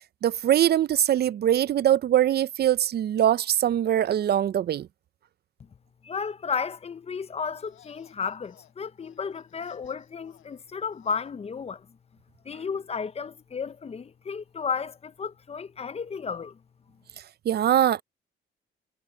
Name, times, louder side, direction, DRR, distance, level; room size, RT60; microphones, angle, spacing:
voice 1, 0.2-4.9 17.5-18.0, right 11 dB, 55° right, 0.5 m, -22 dB
voice 2, 6.0-11.9 12.4-16.6, left 6 dB, 30° left, 0.6 m, -33 dB
sound 1, 7.5-11.3, left 12 dB, 80° left, 5.3 m, -59 dB
cardioid pair, 90°, 20 cm